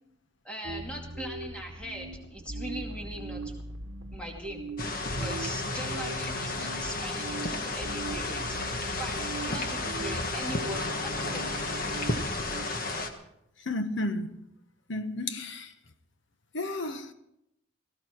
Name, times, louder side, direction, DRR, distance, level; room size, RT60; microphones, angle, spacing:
voice 1, 0.4-3.5 4.1-4.7 5.1-11.5, right 1 dB, 5° left, 2.3 m, -40 dB
sound 1, 0.6-12.7, right 2 dB, 65° right, 1.1 m, -40 dB
sound 2, 4.8-13.1, left 2 dB, 45° left, 1.4 m, -32 dB
voice 2, 13.6-14.5 14.9-15.7 16.5-17.1, left 2 dB, 60° left, 1.2 m, -32 dB
17.5 x 15.5 x 4.6 m
head